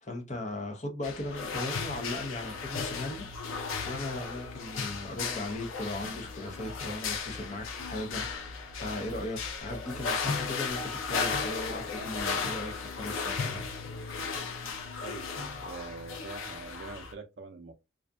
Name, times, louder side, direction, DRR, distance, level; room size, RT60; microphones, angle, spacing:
voice 1, 0.0-3.3 3.8-8.5 8.8-13.6, left 2 dB, 35° left, 0.6 m, -38 dB
sound 1, 1.0-17.1, left 5 dB, 90° left, 0.5 m, -35 dB
voice 2, 15.0-17.7, right 4 dB, 55° right, 0.4 m, -44 dB
2.5 x 2.4 x 2.2 m
head